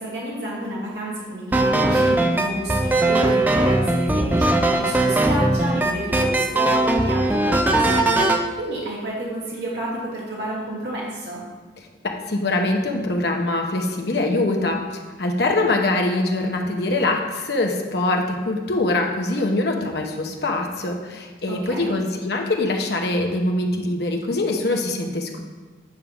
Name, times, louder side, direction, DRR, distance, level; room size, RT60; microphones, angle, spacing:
voice 1, 0.0-11.4 21.5-21.9, right 1 dB, 65° right, -5 dB, 1.6 m, -30 dB
sound 1, 1.5-8.4, right 2 dB, 10° right, 0.3 m, -19 dB
voice 2, 12.3-25.4, left 2 dB, 60° left, 2 dB, 0.9 m, -23 dB
9.1 x 3.6 x 5.9 m, 1.3 s
head